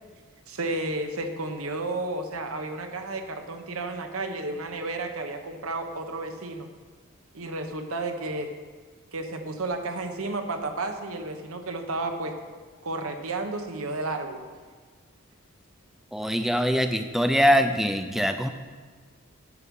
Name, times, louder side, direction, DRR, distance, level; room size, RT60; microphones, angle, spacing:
voice 1, 0.5-6.7 7.3-8.5 9.1-12.3 12.8-14.4, right 2 dB, 85° right, 6 dB, 1.1 m, -32 dB
voice 2, 16.1-18.5, equal, ahead, 7 dB, 0.5 m, -23 dB
11.0 x 7.4 x 5.4 m, 1.5 s
head